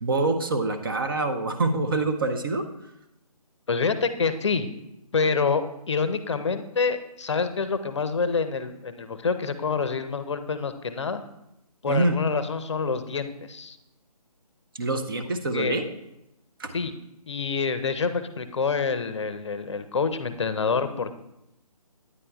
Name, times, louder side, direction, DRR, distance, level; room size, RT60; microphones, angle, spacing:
voice 1, 0.0-2.6 11.9-12.1 14.7-15.9 16.6-16.7, right 2 dB, 35° right, 7 dB, 0.6 m, -25 dB
voice 2, 3.7-4.7 5.1-11.2 11.8-13.8 15.5-15.8 16.7-16.9 17.3-21.1, left 5 dB, 45° left, 11 dB, 0.6 m, -27 dB
9.6 x 9.5 x 2.3 m, 0.85 s
figure-of-eight pair, 155°, 20 cm